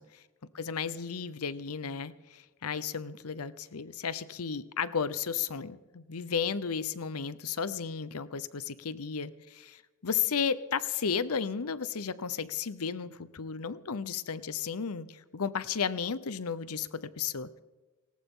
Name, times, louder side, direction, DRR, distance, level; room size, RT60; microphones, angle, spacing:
voice 1, 0.5-17.6, left 6 dB, 85° left, 15 dB, 0.8 m, -34 dB
19.0 x 18.5 x 3.8 m, 1.2 s
head